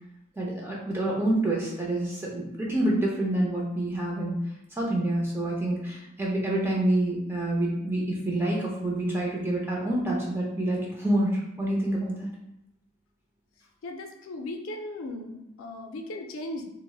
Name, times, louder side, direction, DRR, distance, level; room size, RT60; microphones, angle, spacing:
voice 1, 0.4-4.4 4.7-12.3, right 1 dB, 10° right, -3 dB, 0.5 m, -27 dB
voice 2, 13.8-16.7, left 1 dB, 75° left, 3 dB, 0.4 m, -37 dB
3.9 x 2.0 x 2.3 m, 0.85 s
head